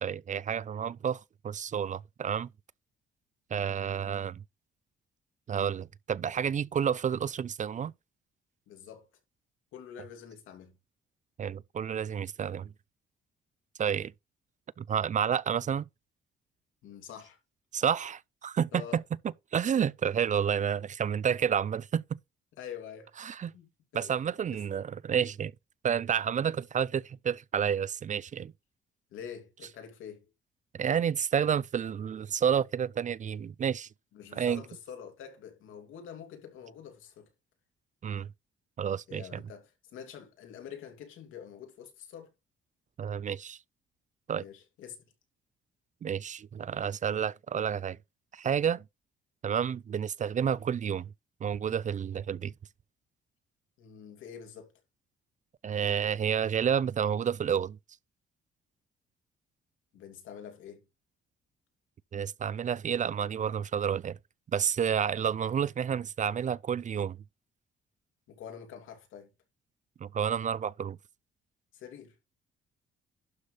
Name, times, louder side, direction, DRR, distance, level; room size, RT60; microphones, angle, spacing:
voice 1, 0.0-2.5 3.5-4.4 5.5-7.9 11.4-12.7 13.8-14.1 14.8-15.9 17.7-19.0 19.5-22.2 23.2-23.5 23.9-25.5 25.8-28.5 30.7-33.9 34.4-34.6 38.0-38.3 38.8-39.4 43.0-43.6 44.3-44.4 46.0-48.0 48.3-48.8 49.4-51.1 51.4-52.5 55.6-57.8 62.1-64.2 64.5-67.2 70.0-71.0, right 8 dB, 40° right, 0.4 m, -30 dB
voice 2, 8.7-9.1 9.7-10.8 16.8-17.4 18.7-19.0 22.5-23.1 23.5-24.2 24.5-24.6 29.1-30.3 34.1-37.3 39.1-42.3 44.4-45.0 53.8-54.7 59.9-60.8 68.3-69.3 71.7-72.2, left 8 dB, 90° left, 3.0 m, -46 dB
12.0 x 4.0 x 4.9 m
cardioid pair, 90°, 20 cm